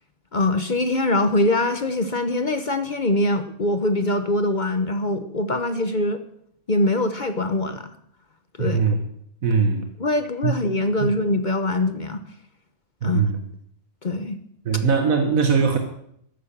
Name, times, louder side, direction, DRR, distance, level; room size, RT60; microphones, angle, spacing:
voice 1, 0.3-6.2 6.7-7.9 8.6-8.8 10.0-12.2 13.0-13.2 14.0-14.4, left 2 dB, 40° left, 9 dB, 1.0 m, -23 dB
voice 2, 8.6-9.0 9.4-9.9 10.4-10.5 11.0-11.1 13.0-13.4 14.7-15.8, right 5 dB, 85° right, 5 dB, 1.8 m, -20 dB
12.5 x 11.0 x 7.4 m, 0.71 s
omnidirectional pair, 1.4 m